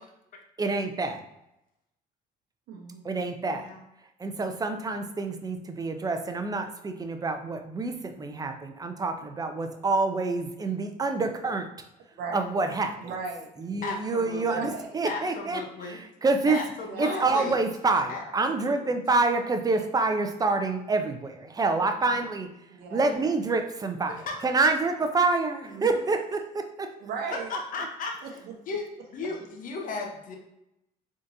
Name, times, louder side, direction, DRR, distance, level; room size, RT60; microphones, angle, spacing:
voice 1, 0.6-1.2 3.0-3.7 4.2-11.7 12.3-12.9 13.6-16.6 17.0-22.5 22.9-26.9, right 3 dB, 20° right, 6 dB, 0.5 m, -27 dB
voice 2, 2.7-3.0 12.2-12.4 13.0-13.5 14.5-14.9 16.8-17.4 19.7-19.9 22.7-23.2 25.7-26.1 27.0-27.5 28.2-28.5, right 4 dB, 75° right, 1 dB, 0.8 m, -37 dB
voice 3, 13.8-14.4 15.1-16.0 16.5-17.6 18.1-18.2 18.5-18.8 22.9-23.3 24.3-24.4 27.3-28.1 28.7-28.8 29.1-30.4, left 4 dB, 55° left, 1 dB, 0.8 m, -35 dB
4.0 x 3.7 x 2.6 m, 0.86 s
cardioid pair, 110°, 17 cm